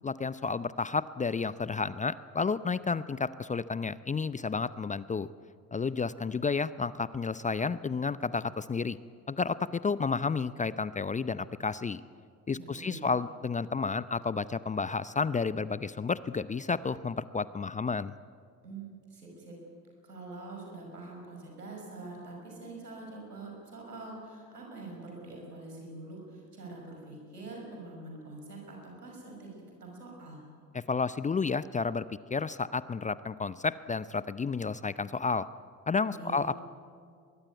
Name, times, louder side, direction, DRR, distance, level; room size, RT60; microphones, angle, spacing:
voice 1, 0.0-5.3 5.7-9.0 9.3-12.0 12.5-18.1 30.7-35.5 35.9-36.6, left 4 dB, 15° left, 17 dB, 0.6 m, -31 dB
voice 2, 12.5-13.1 18.6-19.6 20.0-30.4 36.0-36.4, right 2 dB, 85° right, 0 dB, 6.1 m, -45 dB
22.5 x 22.0 x 9.3 m, 2.2 s
figure-of-eight pair, 55°, 46 cm